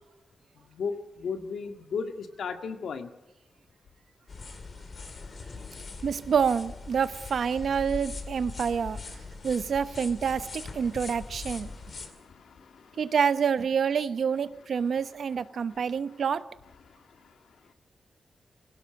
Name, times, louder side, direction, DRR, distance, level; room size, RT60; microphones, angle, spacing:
voice 1, 0.5-3.1 10.9-11.0 11.4-13.1 14.9-15.0 15.5-16.2 16.8-17.7, left 5 dB, 85° left, 6 dB, 1.7 m, -38 dB
sound 1, 4.3-12.1, left 3 dB, 45° left, 2.2 m, -41 dB
voice 2, 6.0-9.0 9.4-11.7 13.0-16.4, right 6 dB, 65° right, 13 dB, 0.8 m, -27 dB
21.5 x 17.0 x 7.7 m, 0.96 s
wide cardioid pair, 145°, 0 cm